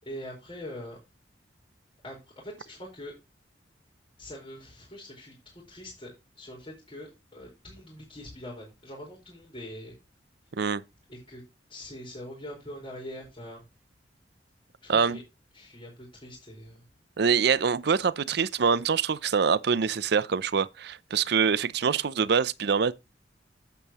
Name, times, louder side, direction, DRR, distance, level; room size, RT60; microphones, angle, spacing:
voice 1, 0.0-1.0 2.0-3.1 4.2-9.9 11.1-11.4 11.7-13.6 14.8-15.2 15.5-16.8, left 1 dB, 30° left, 4.8 m, -43 dB
voice 2, 17.2-22.9, right 6 dB, 65° right, 0.5 m, -25 dB
11.0 x 8.5 x 3.0 m
head